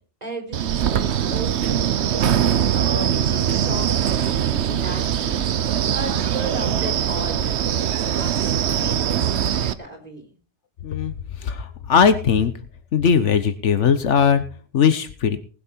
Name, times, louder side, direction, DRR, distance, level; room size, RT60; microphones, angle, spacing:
voice 1, 0.2-1.8 2.1-7.4 7.8-10.3, right 1 dB, 35° right, 0 dB, 4.7 m, -35 dB
Wind, 0.5-9.7, right 9 dB, 70° right, 1.0 m, -22 dB
voice 2, 11.4-12.5 12.9-14.4 14.7-15.4, left 7 dB, 75° left, 11 dB, 1.3 m, -19 dB
19.5 x 7.7 x 4.5 m, 0.38 s
omnidirectional pair, 1.2 m